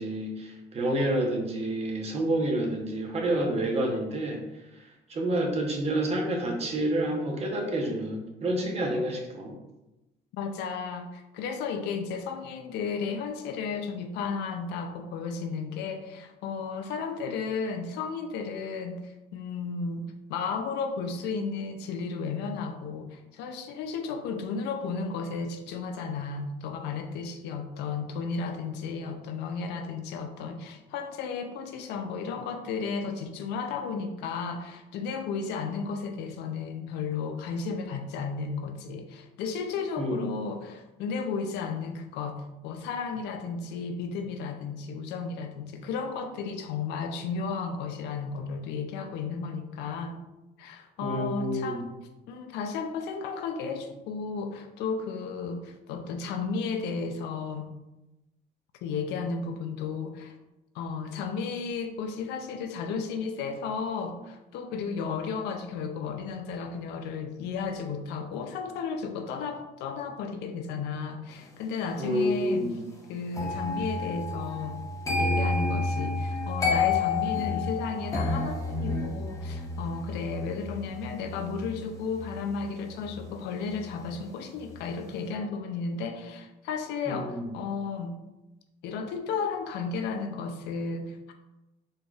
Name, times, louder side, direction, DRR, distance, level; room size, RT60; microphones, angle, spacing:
voice 1, 0.0-4.4 5.1-9.5 40.0-40.3 51.0-51.8 72.0-72.8 87.1-87.5, right 1 dB, 40° right, 1 dB, 0.9 m, -28 dB
voice 2, 10.3-50.2 50.6-51.9 52.3-57.7 58.8-60.3 60.7-72.7 73.1-74.8 75.2-88.2 88.8-91.3, left 5 dB, 85° left, 6 dB, 0.5 m, -34 dB
sound 1, 73.3-84.3 84.6-85.0, left 3 dB, 20° left, 0.7 m, -31 dB
4.2 x 3.3 x 2.3 m, 0.99 s
cardioid pair, 110°, 17 cm